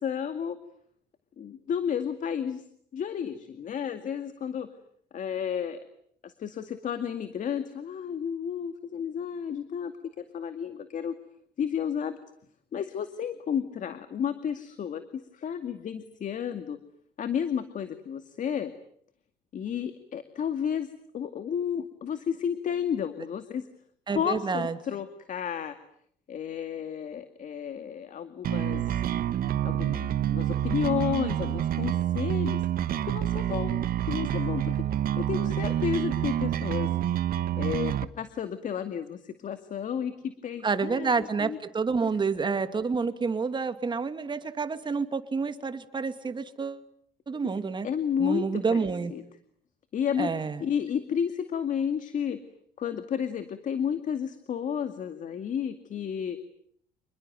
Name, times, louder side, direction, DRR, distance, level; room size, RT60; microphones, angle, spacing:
voice 1, 0.0-0.6 1.4-2.6 2.9-4.7 5.1-5.8 6.2-11.1 11.6-12.2 12.7-16.8 17.2-18.7 19.5-20.9 21.1-23.6 24.1-25.8 26.3-28.8 29.6-32.6 33.1-33.8 34.1-36.9 37.6-41.6 42.0-42.2 47.4-49.2 49.9-52.4 52.8-56.4, left 8 dB, 50° left, 9 dB, 2.2 m, -32 dB
voice 2, 24.1-24.8 40.6-46.8 47.3-47.9 48.2-49.1 50.2-50.6, right 5 dB, 25° right, 10 dB, 2.5 m, -29 dB
sound 1, 28.4-38.0, right 11 dB, 60° right, 1.4 m, -28 dB
28.0 x 21.0 x 9.5 m, 0.67 s
cardioid pair, 110°, 17 cm